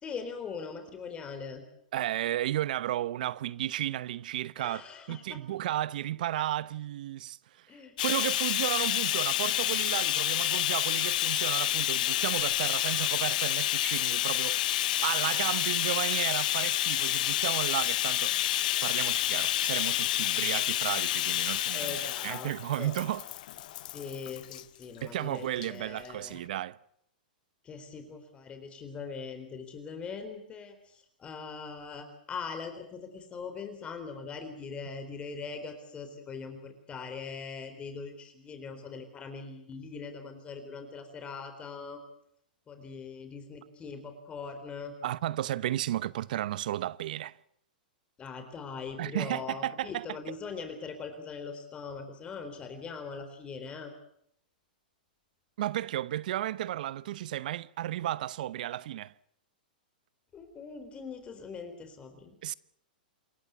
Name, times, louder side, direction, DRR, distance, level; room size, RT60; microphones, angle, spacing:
voice 1, 0.0-1.6 4.6-5.4 7.7-7.9 21.7-22.9 23.9-26.4 27.6-42.0 42.7-45.0 48.2-53.9 60.3-62.4, left 5 dB, 20° left, 3.9 m, -41 dB
voice 2, 1.9-4.8 5.1-7.7 8.0-18.4 18.8-21.9 22.2-23.2 25.0-26.8 45.0-47.4 49.0-50.0 55.6-59.1 62.4-62.5, right 13 dB, 65° right, 0.9 m, -33 dB
Bathtub (filling or washing), 8.0-24.6 25.5-25.7 26.0-26.1, left 14 dB, 60° left, 0.9 m, -29 dB
27.5 x 15.0 x 8.3 m
hypercardioid pair, 125°, 5 cm